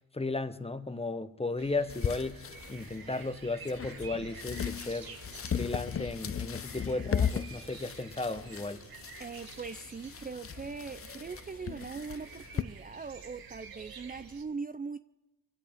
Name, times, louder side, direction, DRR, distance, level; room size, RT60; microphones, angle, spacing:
voice 1, 0.1-2.4 2.7-5.1 5.5-8.8, left 3 dB, 15° left, 1.0 m, -35 dB
sound 1, 1.6-14.4, right 5 dB, 80° right, 1.5 m, -50 dB
sound 2, 1.9-12.6, left 8 dB, 40° left, 0.6 m, -37 dB
voice 2, 9.2-15.0, right 5 dB, 25° right, 0.4 m, -41 dB
23.0 x 16.0 x 3.6 m
cardioid pair, 60°, 35 cm